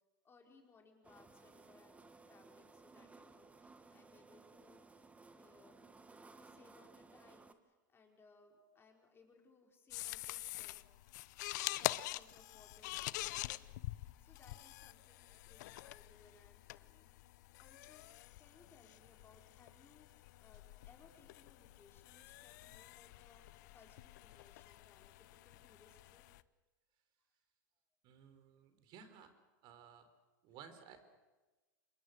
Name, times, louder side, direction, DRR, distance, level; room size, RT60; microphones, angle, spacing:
voice 1, 0.2-5.9 6.1-10.9 11.7-23.5 23.7-26.2 28.5-28.6, left 4 dB, 20° left, 2 dB, 5.0 m, -66 dB
sound 1, 1.0-7.5, right 3 dB, 15° right, 1.6 m, -60 dB
sound 2, 9.9-26.4, left 18 dB, 65° left, 0.7 m, -46 dB
voice 2, 28.0-29.3 29.6-30.1 30.4-31.0, right 7 dB, 50° right, 10 dB, 3.9 m, -57 dB
26.5 x 22.0 x 6.5 m, 1.2 s
hypercardioid pair, 105°, 10 cm